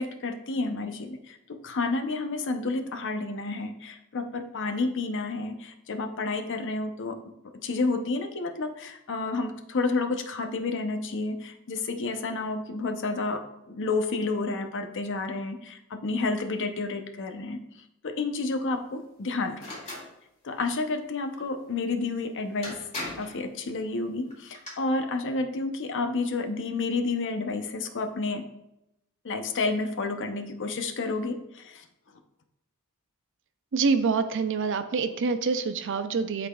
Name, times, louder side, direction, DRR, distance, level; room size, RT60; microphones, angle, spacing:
voice 1, 0.0-7.2 7.6-17.6 18.0-19.7 20.4-22.8 23.2-28.4 29.2-31.8, left 3 dB, 55° left, 6 dB, 0.6 m, -30 dB
sound 1, 19.6-20.1 22.1-22.2 22.6-23.4 24.3-24.7, left 1 dB, 30° left, 2.2 m, -37 dB
voice 2, 33.7-36.5, right 4 dB, 55° right, 9 dB, 0.5 m, -26 dB
11.5 x 3.9 x 2.3 m, 0.85 s
head